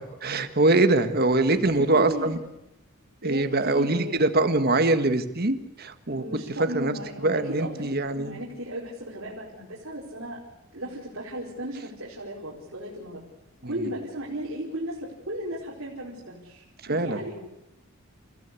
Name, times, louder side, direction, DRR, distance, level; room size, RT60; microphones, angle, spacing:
voice 1, 0.2-2.4 3.2-6.2 6.7-6.9 7.2-8.4 13.7-13.8 16.9-17.2, right 2 dB, 45° right, 8 dB, 1.7 m, -23 dB
voice 2, 1.5-2.3 3.2-4.2 6.1-10.4 10.7-13.2 13.7-17.4, right 1 dB, 60° right, -5 dB, 4.7 m, -35 dB
29.0 x 15.5 x 8.4 m, 0.91 s
head